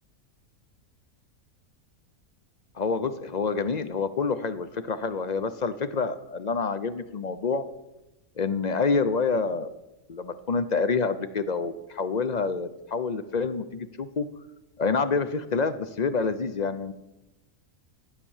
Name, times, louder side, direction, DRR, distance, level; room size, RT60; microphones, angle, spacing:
voice 1, 2.8-7.6 8.4-9.7 10.1-14.3 14.8-16.9, left 4 dB, 50° left, 12 dB, 0.5 m, -27 dB
12.5 x 8.4 x 7.2 m, 0.98 s
omnidirectional pair, 1.4 m